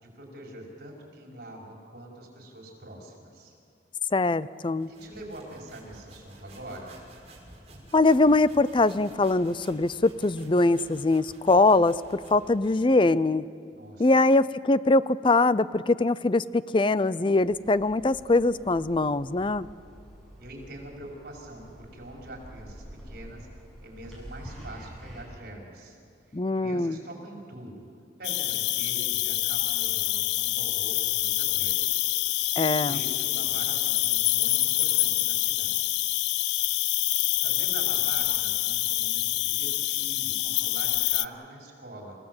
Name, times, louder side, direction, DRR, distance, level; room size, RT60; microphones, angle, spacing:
voice 1, 0.0-3.5 4.9-7.0 13.7-14.1 19.3-19.5 20.4-23.5 23.8-26.0 26.3-27.9 28.2-32.1 32.5-36.0 37.4-42.2, right 1 dB, 60° right, -1 dB, 5.5 m, -44 dB
voice 2, 4.1-4.9 7.9-13.4 14.0-19.7 26.3-27.0 32.6-33.0, left 2 dB, 30° left, 17 dB, 0.5 m, -22 dB
sound 1, 4.6-13.2, right 1 dB, 35° right, 5.8 m, -51 dB
sound 2, 17.4-25.2, equal, 5° left, 7.7 m, -47 dB
Cricket, 28.2-41.3, left 16 dB, 75° left, 0.5 m, -26 dB
28.5 x 17.5 x 7.9 m, 2.3 s
head